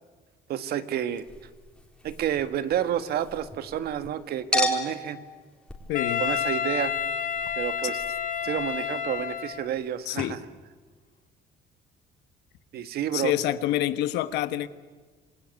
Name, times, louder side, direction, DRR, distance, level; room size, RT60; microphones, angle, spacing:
voice 1, 0.5-1.3 2.0-5.2 6.2-7.0 7.6-8.0 8.4-10.4 12.7-13.3, right 10 dB, 70° right, 11 dB, 1.7 m, -30 dB
Chink clink, 1.1-4.1 4.5-9.9 10.2-10.3, left 1 dB, 5° left, 4.0 m, -35 dB
voice 2, 5.9-6.2 10.1-10.4 13.1-14.7, left 13 dB, 90° left, 12 dB, 1.3 m, -27 dB
Wind instrument woodwind instrument, 5.9-9.8, left 8 dB, 50° left, 1.4 m, -29 dB
27.5 x 19.0 x 9.6 m, 1.4 s
cardioid pair, 110°, 17 cm